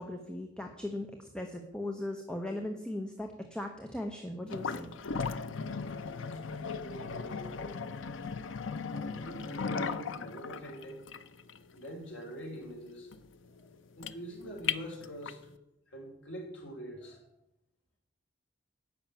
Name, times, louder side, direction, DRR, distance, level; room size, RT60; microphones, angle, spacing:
voice 1, 0.0-4.9, left 1 dB, 5° left, 4 dB, 0.9 m, -38 dB
sound 1, 4.5-15.5, left 5 dB, 90° left, 0.6 m, -37 dB
voice 2, 6.6-7.8 8.9-11.1 11.7-13.1 13.6-13.7 14.0-15.5 15.9-17.3, equal, 70° left, 0 dB, 3.7 m, -44 dB
10.5 x 6.0 x 8.8 m, 0.86 s
head